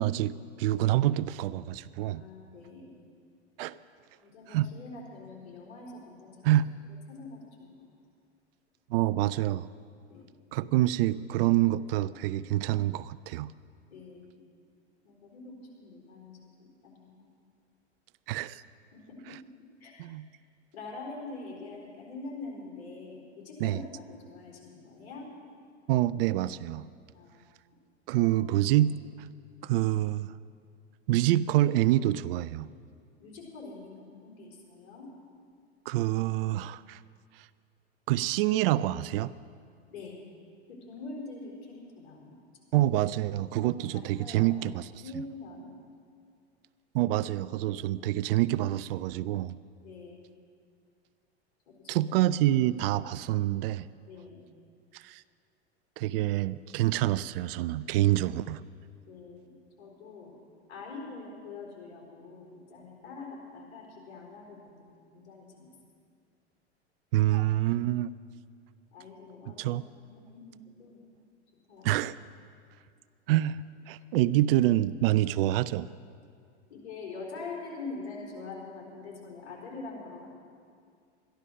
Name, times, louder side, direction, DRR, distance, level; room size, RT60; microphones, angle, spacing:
voice 1, 0.0-2.2 3.6-3.8 4.5-4.7 6.4-6.6 8.9-9.7 10.5-13.5 18.3-18.6 19.3-19.4 20.0-20.3 23.6-23.8 25.9-26.9 28.1-29.3 29.6-30.3 31.1-32.7 35.9-37.0 37.4-37.5 38.1-39.3 42.7-45.0 46.9-49.6 51.9-53.9 54.9-55.2 56.0-58.6 67.1-68.1 69.5-69.8 71.8-72.1 73.3-75.9, right 14 dB, 55° right, 17 dB, 0.5 m, -27 dB
voice 2, 2.1-2.9 4.2-6.6 7.1-7.7 10.1-10.3 13.9-14.4 15.0-16.3 16.6-17.3 18.9-19.4 19.8-20.0 20.7-25.3 27.1-27.5 28.1-28.3 33.2-35.1 39.9-40.2 40.7-42.4 43.6-44.6 45.0-45.7 49.8-50.3 51.7-52.1 54.1-54.4 59.1-60.3 60.7-65.7 68.9-71.0 71.7-71.9 76.7-80.3, left 3 dB, 65° left, -2 dB, 4.2 m, -44 dB
13.5 x 11.5 x 6.3 m, 2.3 s
hypercardioid pair, 95°, 34 cm